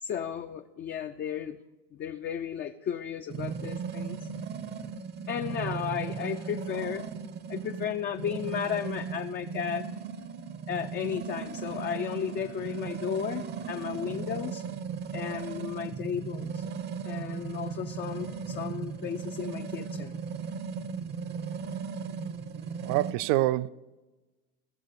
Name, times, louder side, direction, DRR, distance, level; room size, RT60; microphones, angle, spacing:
voice 1, 0.0-1.6 1.9-4.2 5.3-7.1 7.5-9.9 10.7-14.7 15.1-16.7 17.0-20.2, left 8 dB, 35° left, 0.5 m, -34 dB
sound 1, 3.3-23.1, right 6 dB, 35° right, 0.7 m, -37 dB
voice 2, 22.8-23.7, right 16 dB, 70° right, 0.5 m, -26 dB
16.0 x 6.6 x 6.7 m
supercardioid pair, 115°, 30 cm